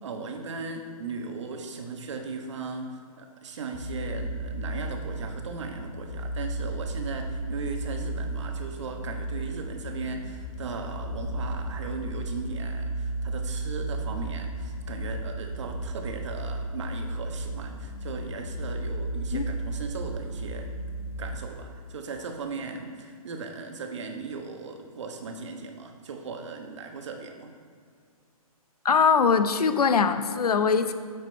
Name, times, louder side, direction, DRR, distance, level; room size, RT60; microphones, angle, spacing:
voice 1, 0.0-20.7 21.2-27.5, right 4 dB, 50° right, 4 dB, 1.2 m, -37 dB
sound 1, 3.7-21.5, right 1 dB, 65° left, 1.8 m, -34 dB
voice 2, 28.8-30.9, left 5 dB, 90° left, 9 dB, 0.8 m, -22 dB
8.5 x 7.3 x 4.5 m, 2.1 s
hypercardioid pair, 165°, 19 cm